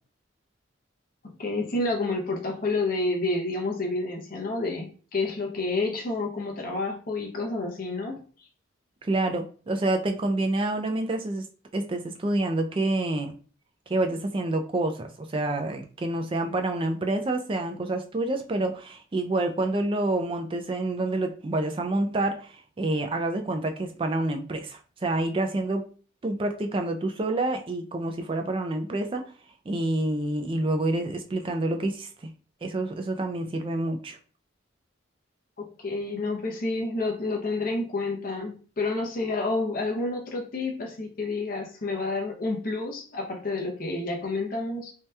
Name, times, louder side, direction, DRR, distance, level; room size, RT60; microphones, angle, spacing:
voice 1, 1.4-8.2 35.6-44.9, left 2 dB, 45° left, 0 dB, 0.6 m, -29 dB
voice 2, 9.0-11.4 11.7-13.4 13.9-25.9 26.2-29.3 29.7-32.1 32.6-34.2, right 2 dB, 25° right, 5 dB, 0.3 m, -28 dB
2.7 x 2.2 x 3.3 m, 0.39 s
head